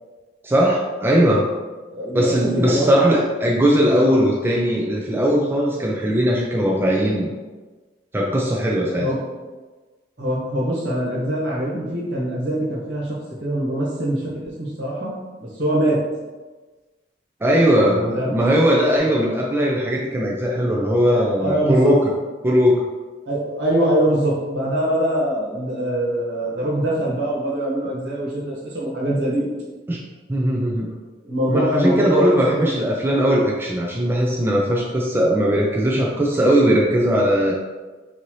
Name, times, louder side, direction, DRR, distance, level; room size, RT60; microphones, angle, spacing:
voice 1, 0.4-1.5 2.1-7.3 8.1-9.1 17.4-22.1 22.4-22.9 29.9-30.0 30.3-30.9 31.5-37.5, equal, 15° right, -2 dB, 0.4 m, -19 dB
voice 2, 1.9-2.9 9.0-9.2 10.2-15.1 15.4-16.0 17.8-18.4 19.0-19.1 20.6-20.7 21.1-21.9 23.2-29.5 31.2-32.7, right 1 dB, 70° right, -6 dB, 1.3 m, -23 dB
4.0 x 2.7 x 3.1 m, 1.3 s
head